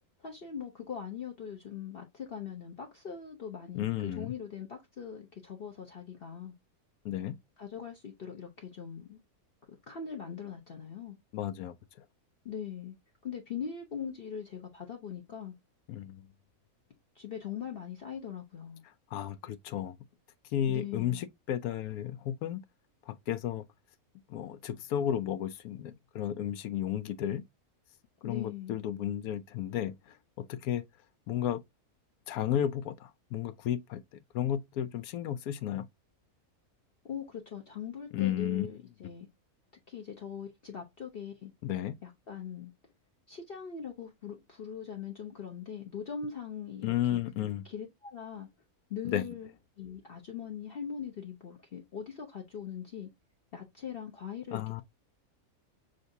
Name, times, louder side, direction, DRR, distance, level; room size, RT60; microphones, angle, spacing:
voice 1, 0.2-3.9 4.2-6.5 7.6-9.2 9.9-11.2 12.4-13.0 13.2-15.6 17.1-18.8 20.6-21.3 28.2-28.8 37.0-39.3 39.9-41.5 42.0-42.7 43.3-48.5 48.9-49.5 49.8-53.1 53.5-54.8, left 7 dB, 50° left, 0.8 m, -41 dB
voice 2, 3.7-4.3 7.0-7.4 11.3-12.0 15.9-16.3 19.1-20.0 20.5-22.6 23.1-23.6 24.3-27.4 28.2-30.8 31.3-31.6 32.3-34.0 34.3-35.9 38.1-38.7 41.6-42.0 46.8-47.7 49.0-49.2 54.5-54.8, left 11 dB, 80° left, 1.0 m, -33 dB
6.4 x 2.6 x 2.6 m
omnidirectional pair, 1.6 m